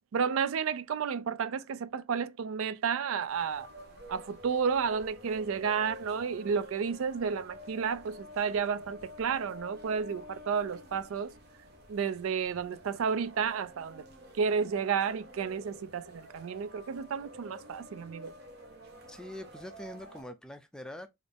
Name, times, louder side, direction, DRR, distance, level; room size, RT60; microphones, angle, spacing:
voice 1, 0.1-3.7 4.1-11.3 11.9-14.0 14.4-18.3, right 6 dB, 85° right, 0.4 m, -31 dB
sound 1, 3.3-20.2, left 1 dB, 50° right, 1.0 m, -50 dB
voice 2, 19.1-21.1, left 1 dB, 5° left, 0.3 m, -44 dB
4.0 x 2.5 x 3.4 m
head